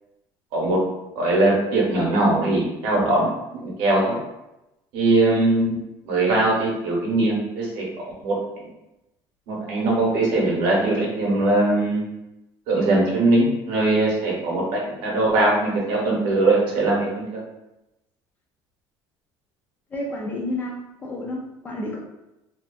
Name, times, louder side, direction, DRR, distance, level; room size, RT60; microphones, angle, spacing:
voice 1, 1.2-3.3 3.6-4.2 4.9-5.8 6.1-7.8 8.2-8.7 9.5-12.0 12.7-17.4, right 2 dB, 65° right, -4 dB, 0.9 m, -21 dB
voice 2, 19.9-22.0, left 1 dB, 20° left, -2 dB, 0.3 m, -30 dB
2.7 x 2.3 x 2.3 m, 0.94 s
cardioid pair, 175°, 9 cm